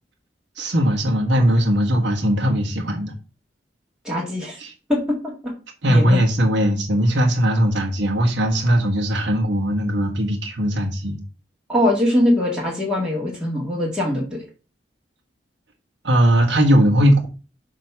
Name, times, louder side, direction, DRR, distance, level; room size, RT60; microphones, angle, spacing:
voice 1, 0.6-3.1 4.6-4.7 5.8-11.2 16.0-17.3, equal, 90° right, 2 dB, 1.4 m, -19 dB
voice 2, 4.0-4.6 4.9-5.3 5.9-6.2 11.7-14.4, left 1 dB, 5° right, -4 dB, 1.8 m, -21 dB
7.5 x 3.0 x 5.9 m, 0.33 s
head